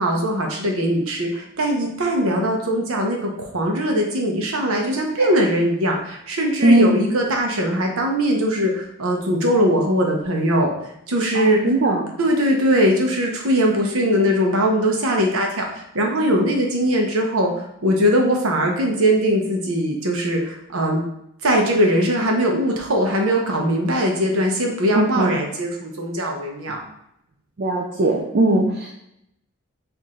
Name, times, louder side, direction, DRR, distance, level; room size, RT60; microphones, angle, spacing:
voice 1, 0.0-10.7 11.1-11.6 12.2-17.5 17.8-21.0 21.4-26.8, equal, 85° right, 1 dB, 0.9 m, -20 dB
voice 2, 6.6-7.0 11.3-12.1 24.9-25.3 27.6-28.9, right 1 dB, 50° right, -2 dB, 0.5 m, -19 dB
4.7 x 2.7 x 3.7 m, 0.78 s
head